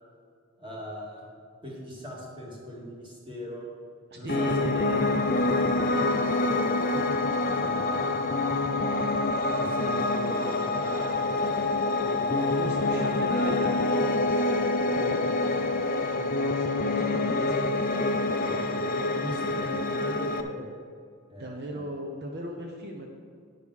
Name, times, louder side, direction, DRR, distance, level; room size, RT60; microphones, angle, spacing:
voice 1, 0.6-1.3 1.6-3.7 4.1-4.9 5.9-7.1 7.6-8.3 9.5-11.4 12.0-12.2 12.6-13.0 18.4-20.7 21.3-21.9, equal, 20° right, -4 dB, 2.1 m, -40 dB
voice 2, 4.1-5.3 12.3-15.4 16.1-17.7 21.4-23.1, right 1 dB, 45° right, 1 dB, 0.8 m, -38 dB
Piano, 4.3-20.4, left 2 dB, 40° left, 0.5 m, -26 dB
9.6 x 5.3 x 6.3 m, 2.2 s
head